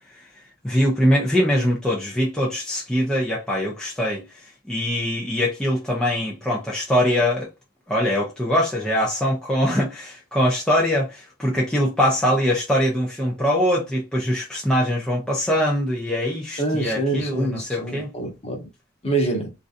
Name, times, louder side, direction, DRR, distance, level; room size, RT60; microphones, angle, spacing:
voice 1, 0.6-4.2 4.7-7.5 7.9-18.1, equal, 5° left, 0.7 m, -22 dB
voice 2, 16.6-18.7 19.0-19.5, right 2 dB, 30° left, 1.2 m, -25 dB
3.7 x 2.6 x 2.6 m
head